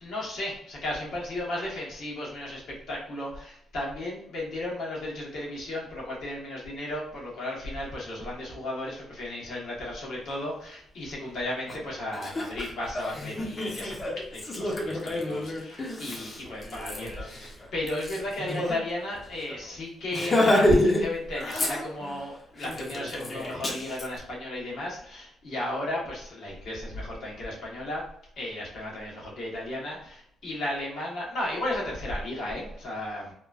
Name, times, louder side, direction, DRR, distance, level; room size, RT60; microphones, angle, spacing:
voice 1, 0.0-28.0 28.4-33.3, left 1 dB, 70° left, -4 dB, 1.2 m, -34 dB
Laughter, 11.7-11.8 12.1-18.8 19.1-19.2 19.5-19.7 20.1-21.0 21.3-22.2 22.6-24.1, left 1 dB, 30° left, 0.6 m, -28 dB
2.9 x 2.3 x 2.4 m, 0.69 s
cardioid pair, 90°, 0 cm